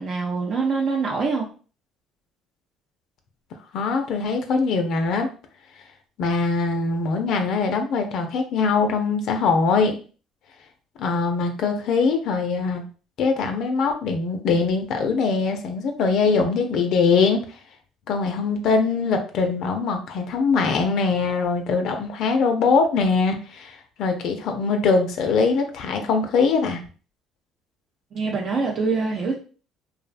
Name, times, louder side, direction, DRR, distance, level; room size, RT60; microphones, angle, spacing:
voice 1, 0.0-1.5 28.1-29.4, right 4 dB, 55° right, -1 dB, 0.4 m, -24 dB
voice 2, 3.7-5.3 6.2-10.0 11.0-12.8 13.2-17.4 18.1-26.8, left 4 dB, 65° left, 5 dB, 0.4 m, -22 dB
2.5 x 2.0 x 2.4 m, 0.38 s
hypercardioid pair, 65°, 0 cm